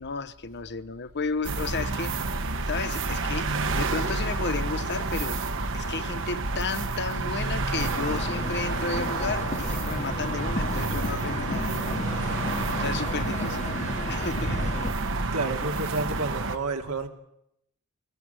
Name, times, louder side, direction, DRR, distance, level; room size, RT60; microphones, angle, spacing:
voice 1, 0.0-5.4 5.7-12.1 12.8-13.7 14.1-14.8, left 4 dB, 50° left, 1.0 m, -33 dB
sound 1, 1.4-16.6, right 3 dB, 65° right, 1.5 m, -29 dB
sound 2, 7.8-14.9, left 2 dB, 35° left, 1.3 m, -34 dB
voice 2, 15.3-17.1, right 3 dB, 80° right, 2.8 m, -30 dB
22.5 x 18.5 x 8.1 m
head